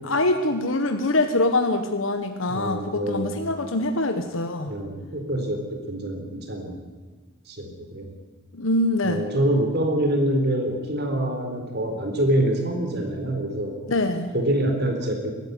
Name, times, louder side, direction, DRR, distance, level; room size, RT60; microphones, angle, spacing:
voice 1, 0.0-4.7 8.5-9.2 13.9-14.3, left 2 dB, 80° left, 6 dB, 1.4 m, -24 dB
voice 2, 2.5-3.5 4.7-6.8 7.5-8.1 9.0-13.8 14.3-15.3, right 1 dB, 55° right, 4 dB, 3.8 m, -25 dB
22.5 x 13.0 x 9.4 m, 1.4 s
head